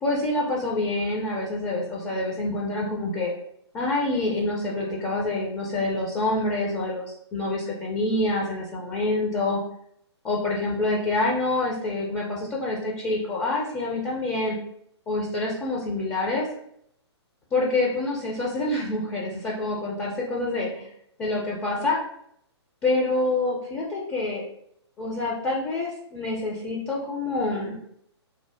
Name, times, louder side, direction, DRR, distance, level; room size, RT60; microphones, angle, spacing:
voice 1, 0.0-3.3 3.7-9.6 10.2-14.6 15.1-16.5 17.5-20.7 21.2-22.0 22.8-24.4 25.0-27.8, left 2 dB, 15° left, -4 dB, 0.4 m, -26 dB
2.7 x 2.0 x 3.2 m, 0.71 s
figure-of-eight pair, 125°, 15 cm